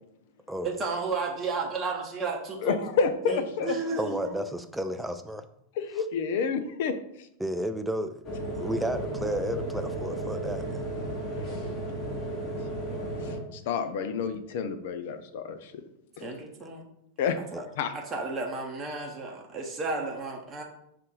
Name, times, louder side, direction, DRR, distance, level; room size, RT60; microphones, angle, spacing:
voice 1, 0.6-2.7 3.2-4.4 16.2-16.9 17.5-17.6 17.9-20.6, right 4 dB, 25° right, 0 dB, 0.8 m, -33 dB
voice 2, 2.6-3.8 5.8-7.3 11.4-11.7 12.9-15.8 16.2-16.4 17.2-17.4 17.8-17.9, left 5 dB, 50° left, 9 dB, 0.4 m, -30 dB
voice 3, 4.0-5.5 7.4-10.7 16.6-16.7 17.5-17.7, equal, 5° right, 8 dB, 0.4 m, -32 dB
sound 1, 8.2-13.4, right 1 dB, 25° left, 1.4 m, -34 dB
5.4 x 2.5 x 3.9 m, 0.76 s
figure-of-eight pair, 90°, 0 cm